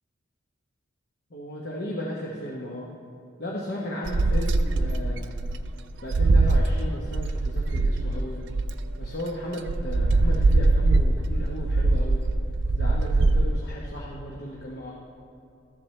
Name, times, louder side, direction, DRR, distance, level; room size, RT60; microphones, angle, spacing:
voice 1, 1.3-2.9 3.4-5.3 6.0-8.4 9.0-12.3 12.7-14.9, equal, 50° left, -4 dB, 0.9 m, -35 dB
sound 1, 4.1-9.1 9.7-13.5, right 2 dB, 65° right, 0.4 m, -22 dB
13.5 x 7.5 x 3.2 m, 2.6 s
head